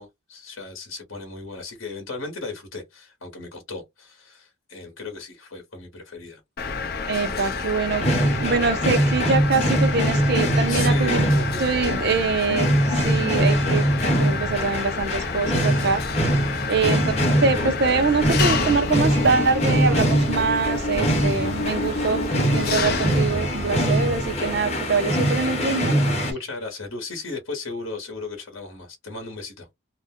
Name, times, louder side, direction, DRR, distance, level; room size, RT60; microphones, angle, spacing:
voice 1, 0.0-6.4 7.3-7.7 10.4-12.5 16.7-17.0 26.2-29.7, left 3 dB, 75° left, 1.0 m, -36 dB
Mechanisms, 6.6-24.6, left 4 dB, 50° left, 0.5 m, -29 dB
voice 2, 7.1-8.1 8.4-11.2 11.6-13.8 14.2-16.0 16.7-17.0 17.4-26.0, right 4 dB, 50° right, 0.5 m, -24 dB
sound 1, 7.9-26.3, equal, 30° left, 1.0 m, -23 dB
2.5 x 2.1 x 3.5 m
head